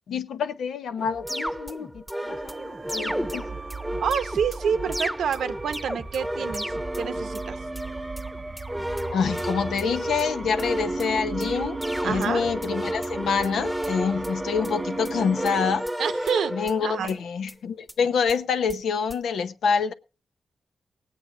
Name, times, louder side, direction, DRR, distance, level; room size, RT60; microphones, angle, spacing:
voice 1, 0.1-3.5 9.1-15.9 16.5-19.9, left 6 dB, 85° left, 0.8 m, -27 dB
sound 1, 1.0-17.2 17.5-17.6 17.9-18.0 18.3-18.4 18.7-18.8 19.1-19.2, equal, 5° right, 0.9 m, -32 dB
sound 2, 2.3-15.8, right 3 dB, 35° right, 0.5 m, -37 dB
voice 2, 4.0-7.6 12.0-12.5 16.0-16.5 16.8-17.2, right 7 dB, 90° right, 0.9 m, -28 dB
18.5 x 8.8 x 3.8 m
cardioid pair, 60°, 0 cm